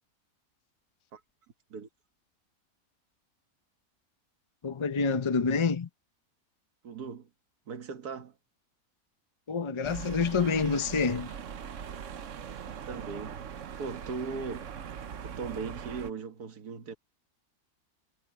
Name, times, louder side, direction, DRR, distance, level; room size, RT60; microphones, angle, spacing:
voice 1, 4.6-5.9 9.5-11.3, left 5 dB, 30° left, 0.6 m, -27 dB
voice 2, 6.8-7.3 7.7-8.4 12.9-13.5 13.8-14.7 15.2-17.0, right 5 dB, 85° right, 1.9 m, -38 dB
sound 1, 9.8-16.1, right 8 dB, 60° right, 1.2 m, -41 dB
omnidirectional pair, 1.6 m